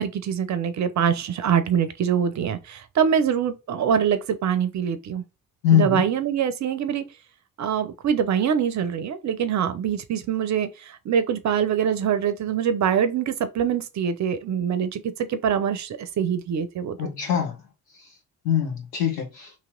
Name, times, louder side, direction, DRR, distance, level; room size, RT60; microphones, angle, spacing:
voice 1, 0.0-5.2 5.7-7.1 7.6-15.0 15.3-17.1, right 8 dB, 40° right, 0.6 m, -24 dB
voice 2, 5.6-6.1 17.0-17.6 18.4-19.5, left 9 dB, 75° left, 1.2 m, -22 dB
3.0 x 2.9 x 3.6 m
figure-of-eight pair, 45°, 46 cm